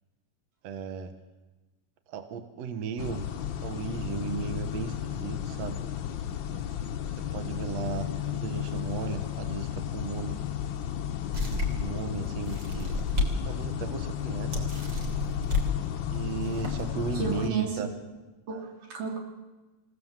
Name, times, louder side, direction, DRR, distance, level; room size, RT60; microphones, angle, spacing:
voice 1, 0.6-1.2 2.1-3.3 3.6-5.8 7.2-10.5 11.7-13.1 13.4-14.7 16.1-17.9, right 6 dB, 65° right, 8 dB, 2.4 m, -35 dB
sound 1, 3.0-17.5, left 10 dB, 85° left, 1.0 m, -33 dB
sound 2, 11.3-11.9 12.5-13.3 13.8-13.9 14.5-15.7 16.4-16.8, left 2 dB, 35° right, 3.5 m, -30 dB
voice 2, 17.1-17.9 18.5-19.2, right 5 dB, 90° right, 2 dB, 4.6 m, -32 dB
27.5 x 17.0 x 7.5 m, 1.2 s
omnidirectional pair, 3.6 m